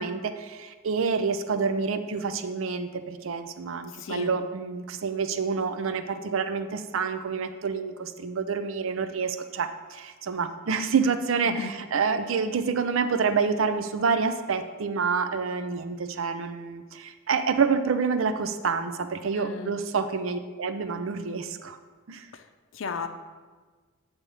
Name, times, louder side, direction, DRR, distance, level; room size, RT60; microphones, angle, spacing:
voice 1, 0.0-21.8 22.1-22.3, right 5 dB, 80° right, 10 dB, 0.5 m, -28 dB
voice 2, 4.0-4.4 11.5-11.7 19.3-19.7 22.3-22.4 22.7-23.1, left 5 dB, 70° left, 8 dB, 0.5 m, -35 dB
8.3 x 3.5 x 5.5 m, 1.4 s
head